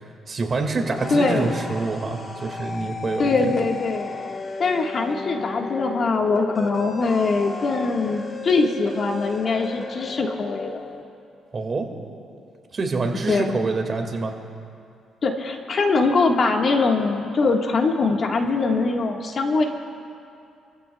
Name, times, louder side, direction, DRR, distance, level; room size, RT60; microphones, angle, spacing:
voice 1, 0.3-3.4 11.5-11.9 12.7-14.4, right 3 dB, 40° right, 3 dB, 1.9 m, -26 dB
sound 1, 0.6-11.0, left 3 dB, 35° left, 1.2 m, -35 dB
voice 2, 1.1-1.5 3.2-4.1 4.6-10.7 13.3-13.6 15.2-19.6, left 3 dB, 50° left, 2 dB, 1.5 m, -22 dB
29.0 x 15.0 x 2.3 m, 2.5 s
cardioid pair, 90°, 0 cm